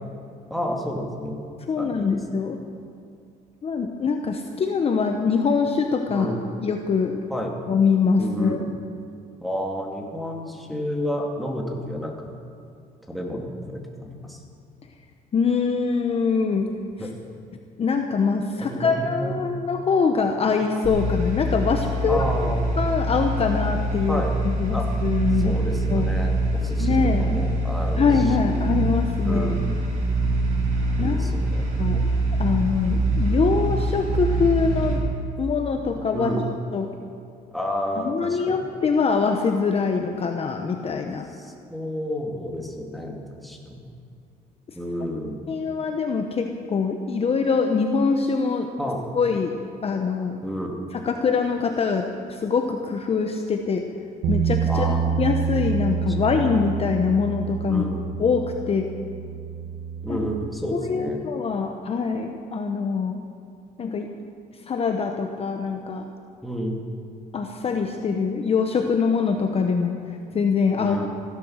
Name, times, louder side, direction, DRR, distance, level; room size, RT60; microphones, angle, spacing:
voice 1, 0.5-1.4 1.8-2.2 6.1-6.4 7.3-7.5 8.2-8.7 9.4-12.4 13.1-14.4 17.0-17.3 18.6-19.4 22.1-22.6 24.1-24.3 24.7-24.9 25.4-28.5 29.2-29.8 31.0-31.7 36.1-36.4 37.5-38.6 41.3-43.9 44.7-45.4 48.8-49.0 50.4-50.8 54.6-55.2 56.0-56.3 57.7-58.0 60.0-61.2 66.4-66.9 70.8-71.1, equal, ahead, 0 dB, 2.4 m, -30 dB
voice 2, 1.7-2.6 3.6-6.3 6.6-7.2 7.7-8.6 15.3-16.7 17.8-22.2 22.8-25.6 25.9-26.1 26.8-27.3 28.0-29.6 31.0-31.2 31.8-32.1 32.4-35.0 35.4-36.3 36.7-36.9 38.1-41.3 45.5-48.7 49.2-49.5 49.8-50.3 50.9-53.8 54.3-57.8 58.2-58.9 60.1-60.2 60.9-63.2 63.8-64.1 64.7-66.1 67.3-69.9 70.3-71.0, left 5 dB, 35° left, 4 dB, 1.0 m, -23 dB
sound 1, 20.8-35.0, right 2 dB, 45° right, 4.6 m, -24 dB
Bass guitar, 54.2-60.5, right 7 dB, 75° right, 1.2 m, -27 dB
16.0 x 11.5 x 6.4 m, 2.4 s
cardioid pair, 110°, 17 cm